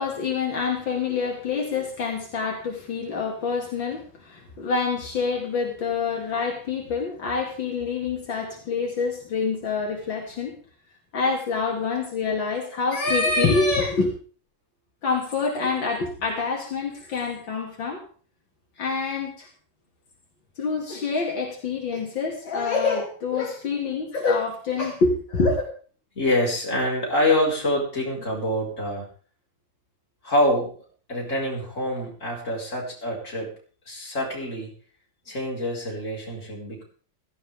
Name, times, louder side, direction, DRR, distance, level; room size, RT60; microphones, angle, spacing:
voice 1, 0.0-10.5 11.1-14.1 15.0-18.0 18.8-19.5 20.6-25.6, left 4 dB, 80° left, 0 dB, 3.1 m, -26 dB
voice 2, 26.2-29.1 30.2-30.7 31.1-33.5 33.9-34.7 35.3-36.8, left 1 dB, 40° left, -3 dB, 5.2 m, -25 dB
16.5 x 14.5 x 3.6 m, 0.41 s
omnidirectional pair, 2.1 m